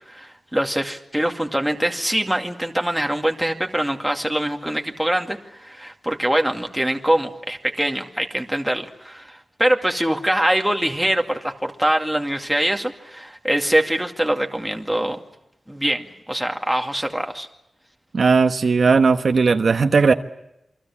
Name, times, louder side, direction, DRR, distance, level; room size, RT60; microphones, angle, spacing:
voice 1, 0.1-15.2 15.7-17.5, right 1 dB, 5° right, 3 dB, 2.3 m, -23 dB
voice 2, 18.1-20.1, right 4 dB, 55° right, 7 dB, 1.2 m, -17 dB
28.5 x 23.5 x 7.4 m, 0.85 s
wide cardioid pair, 130°, 0 cm